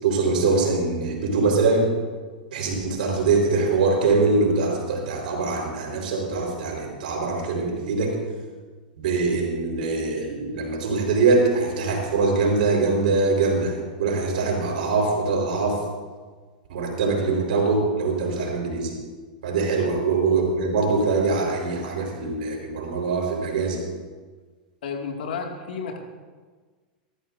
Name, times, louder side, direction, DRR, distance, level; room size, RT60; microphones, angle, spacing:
voice 1, 0.0-1.9 2.5-8.2 9.0-15.8 16.7-19.0 19.4-23.8, right 3 dB, 75° right, 0 dB, 4.1 m, -23 dB
voice 2, 24.8-26.0, left 5 dB, 80° left, 2 dB, 2.0 m, -32 dB
19.5 x 13.5 x 2.6 m, 1.4 s
hypercardioid pair, 115°, 5 cm